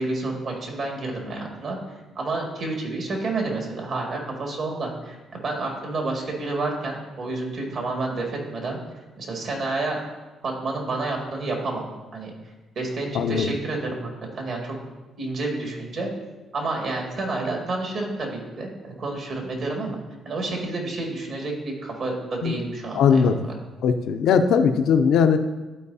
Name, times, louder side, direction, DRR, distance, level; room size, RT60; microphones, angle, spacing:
voice 1, 0.0-1.8 2.2-8.8 9.2-10.0 10.4-12.3 12.8-14.8 15.2-16.1 16.5-20.0 20.3-23.3, right 2 dB, 65° right, 0 dB, 2.0 m, -29 dB
voice 2, 13.1-13.5 22.4-22.5 23.0-23.5 23.8-25.4, left 6 dB, 75° left, 8 dB, 0.5 m, -19 dB
12.0 x 4.6 x 2.7 m, 1.1 s
supercardioid pair, 60°, 0 cm